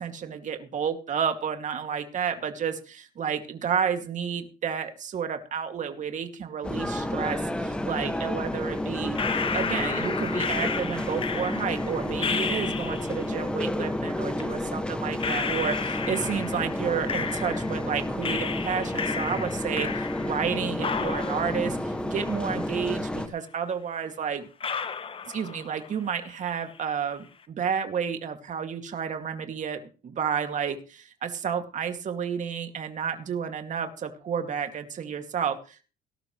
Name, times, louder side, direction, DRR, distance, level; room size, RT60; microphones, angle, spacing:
voice 1, 0.0-9.2 9.5-24.5 25.3-35.8, right 7 dB, 45° right, 6 dB, 2.4 m, -31 dB
sound 1, 6.6-23.3, left 1 dB, 5° left, 1.7 m, -30 dB
sound 2, 9.1-13.3 14.4-14.5 15.2-17.9 18.2-20.5 20.8-22.9 23.2-23.3 24.0-24.1 24.6-25.9 26.2-26.8, left 6 dB, 30° left, 1.2 m, -33 dB
19.0 x 12.0 x 3.2 m, 0.35 s
cardioid pair, 110°, 17 cm